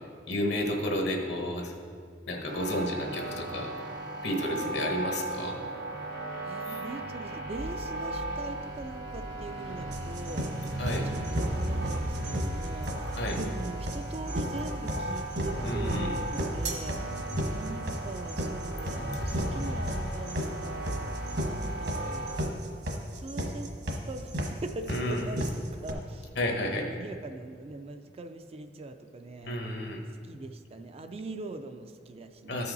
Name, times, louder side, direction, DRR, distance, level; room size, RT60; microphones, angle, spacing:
voice 1, 0.3-1.7 2.3-3.7 4.2-5.6 6.7-6.8 10.8-11.1 13.1-13.4 15.6-16.2 24.9-25.4 26.4-26.8 29.4-30.0 32.5-32.7, left 1 dB, 70° left, 1 dB, 1.2 m, -31 dB
sound 1, 2.5-22.4, right 1 dB, 85° right, 2.4 m, -35 dB
voice 2, 6.4-10.5 11.0-17.1 17.5-20.8 21.4-22.3 23.1-23.7 24.1-29.6 30.2-32.7, right 2 dB, 35° right, 8 dB, 0.4 m, -42 dB
sound 2, 9.9-25.9, equal, 65° right, 1.2 m, -34 dB
13.5 x 5.6 x 4.0 m, 2.2 s
head